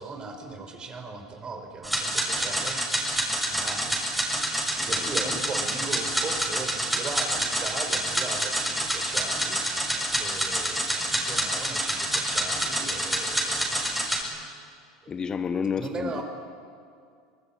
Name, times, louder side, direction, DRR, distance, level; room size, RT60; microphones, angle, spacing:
voice 1, 0.0-2.8 3.4-4.1 4.5-9.6 10.2-13.9 14.2-14.3 15.0-15.1 15.8-16.2, right 4 dB, 30° right, 5 dB, 5.0 m, -38 dB
sound 1, 1.8-14.2, right 1 dB, 5° right, 6.5 m, -27 dB
voice 2, 4.8-5.4 15.1-16.2, left 6 dB, 30° left, 9 dB, 1.2 m, -31 dB
24.5 x 20.5 x 9.2 m, 2.2 s
hypercardioid pair, 85°, 3 cm